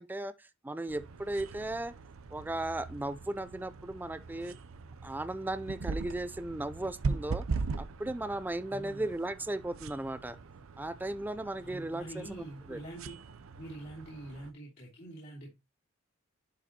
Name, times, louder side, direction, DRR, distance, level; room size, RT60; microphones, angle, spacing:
voice 1, 0.0-1.9 2.3-4.5 5.0-7.4 7.8-10.4 10.8-12.8, right 1 dB, 10° right, 0.3 m, -36 dB
sound 1, 0.9-14.5, right 4 dB, 85° right, 0.6 m, -41 dB
voice 2, 8.7-9.1 11.6-13.2 13.6-15.5, right 1 dB, 50° left, 3.1 m, -45 dB
11.0 x 5.1 x 2.9 m
head